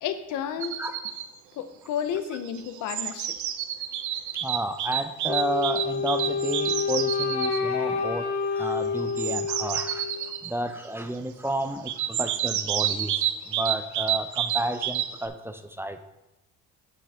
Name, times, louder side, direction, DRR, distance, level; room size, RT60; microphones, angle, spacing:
voice 1, 0.0-0.8 1.5-3.3, left 8 dB, 90° left, 10 dB, 0.7 m, -31 dB
sound 1, 0.6-1.3 2.4-7.6 9.0-10.5 11.9-15.3, right 11 dB, 75° right, 0.6 m, -29 dB
voice 2, 4.4-10.1 10.4-16.0, right 1 dB, 10° right, 8 dB, 0.5 m, -31 dB
Wind instrument woodwind instrument, 5.3-10.3, left 5 dB, 60° left, 1.1 m, -28 dB
7.3 x 6.7 x 3.4 m, 0.97 s
cardioid pair, 90°, 30 cm